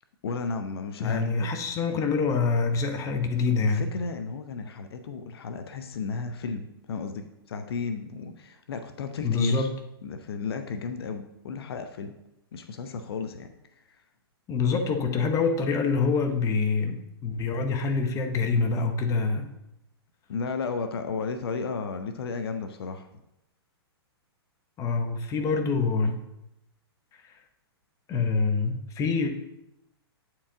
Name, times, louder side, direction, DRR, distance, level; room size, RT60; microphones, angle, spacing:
voice 1, 0.2-1.5 3.6-9.7 10.0-12.1 12.5-14.0 20.3-23.1, left 4 dB, 70° left, 8 dB, 0.7 m, -34 dB
voice 2, 1.0-3.9 9.2-9.8 14.5-19.5 24.8-26.2 28.1-29.3, left 4 dB, 25° left, 5 dB, 0.8 m, -25 dB
8.5 x 4.6 x 3.7 m, 0.87 s
hypercardioid pair, 125°, 13 cm